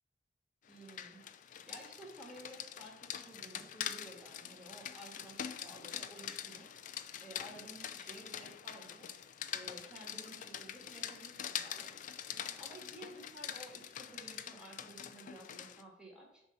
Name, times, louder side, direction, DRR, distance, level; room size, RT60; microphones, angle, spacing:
Rain, 0.7-15.8, left 9 dB, 45° left, 0.3 m, -44 dB
voice 1, 0.7-1.2 1.7-9.1 9.5-11.9 12.2-16.4, right 1 dB, 5° right, -3 dB, 1.4 m, -53 dB
7.0 x 2.7 x 5.5 m, 0.81 s
head